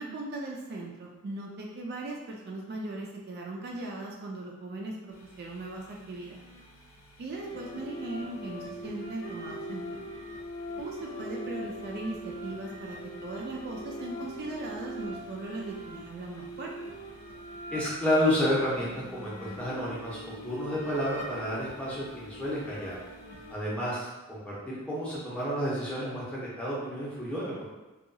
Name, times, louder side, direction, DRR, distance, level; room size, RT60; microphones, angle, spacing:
voice 1, 0.0-6.4 7.2-10.0 10.8-16.7, right 2 dB, 50° right, -1 dB, 0.3 m, -38 dB
sound 1, 5.1-23.6, equal, 70° left, 0.6 m, -42 dB
voice 2, 17.7-23.0 23.5-27.7, equal, 5° left, -7 dB, 0.6 m, -31 dB
2.7 x 2.3 x 2.6 m, 1.1 s
head